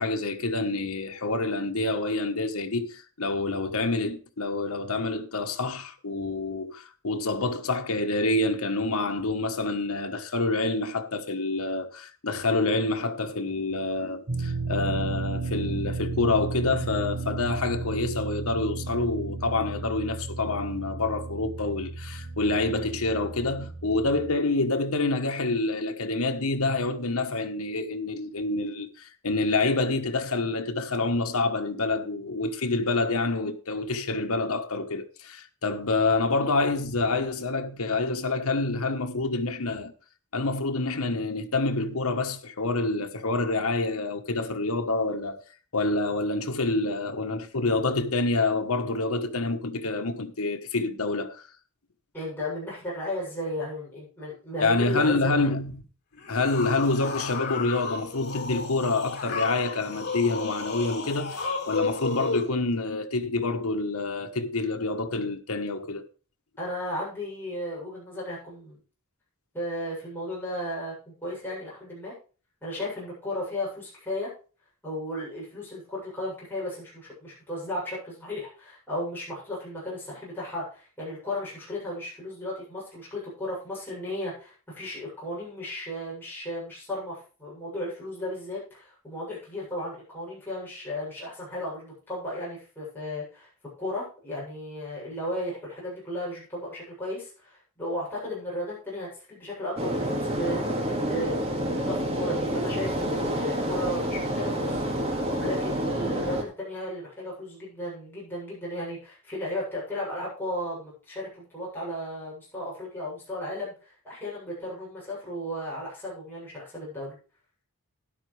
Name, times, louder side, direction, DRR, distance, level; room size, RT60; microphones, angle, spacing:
voice 1, 0.0-39.9 40.3-45.4 45.7-51.4 54.6-55.8 56.3-66.0, left 3 dB, 80° left, 1.3 m, -27 dB
sound 1, 14.3-24.3, right 3 dB, 60° right, 1.6 m, -34 dB
voice 2, 52.1-55.5 66.6-68.8 69.5-72.1 72.6-74.3 74.8-93.5 93.8-101.6 101.9-104.8 105.3-117.2, left 1 dB, 10° left, 7.6 m, -35 dB
sound 2, 56.2-62.5, left 4 dB, 50° left, 4.1 m, -33 dB
sound 3, 99.8-106.4, equal, 30° right, 2.3 m, -28 dB
13.0 x 10.5 x 3.4 m
head